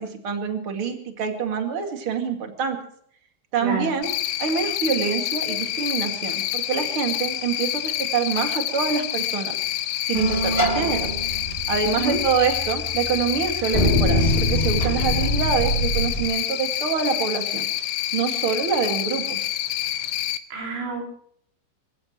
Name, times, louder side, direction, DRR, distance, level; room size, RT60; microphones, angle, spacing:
voice 1, 0.0-2.8 3.5-4.1 4.4-9.5 10.1-11.1 11.7-17.7 18.1-19.4, right 6 dB, 40° right, 4 dB, 2.0 m, -26 dB
voice 2, 3.6-3.9 12.0-12.2 20.5-21.1, right 3 dB, 80° right, -2 dB, 6.6 m, -27 dB
Cricket, 4.0-20.4, left 13 dB, 90° left, 3.3 m, -27 dB
sound 1, 10.1-16.3, equal, 25° left, 1.0 m, -24 dB
27.5 x 15.5 x 3.1 m, 0.64 s
omnidirectional pair, 5.3 m